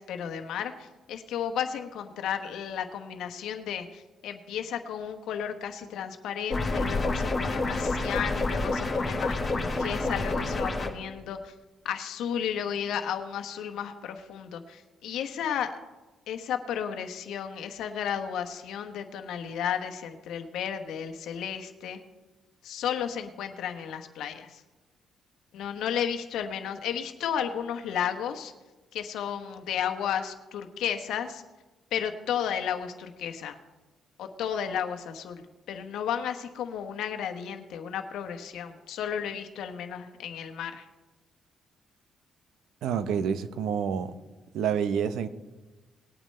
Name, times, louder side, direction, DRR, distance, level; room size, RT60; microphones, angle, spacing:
voice 1, 0.0-11.5 11.8-15.7 16.3-22.0 22.6-24.6 25.5-28.5 28.9-31.4 31.9-33.6 34.2-40.8, left 8 dB, 80° left, 7 dB, 1.1 m, -33 dB
sound 1, 6.5-10.9, left 2 dB, 25° left, 2.3 m, -28 dB
voice 2, 42.8-44.2 44.5-45.3, right 7 dB, 80° right, 12 dB, 0.7 m, -28 dB
19.5 x 8.9 x 3.2 m, 1.2 s
cardioid pair, 90°, 0 cm